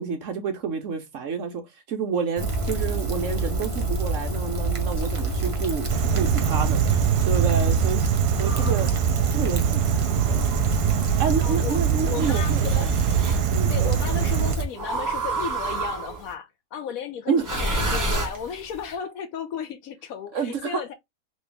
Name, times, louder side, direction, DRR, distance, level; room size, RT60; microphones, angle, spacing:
voice 1, 0.0-7.0 7.2-8.9 9.3-10.5 11.2-12.9 13.5-13.9 17.3-17.7 20.3-20.8, right 6 dB, 60° right, 1.0 m, -29 dB
Rain, 2.4-14.7, right 2 dB, 45° right, 0.4 m, -28 dB
sound 1, 5.9-14.6, right 8 dB, 85° right, 1.1 m, -23 dB
sound 2, 8.4-9.0 10.0-11.2 12.2-13.4 14.8-16.3 17.4-18.8, right 2 dB, 15° right, 0.8 m, -30 dB
voice 2, 11.4-12.9 13.7-20.9, left 7 dB, 70° left, 0.9 m, -34 dB
3.2 x 3.0 x 3.3 m
omnidirectional pair, 1.7 m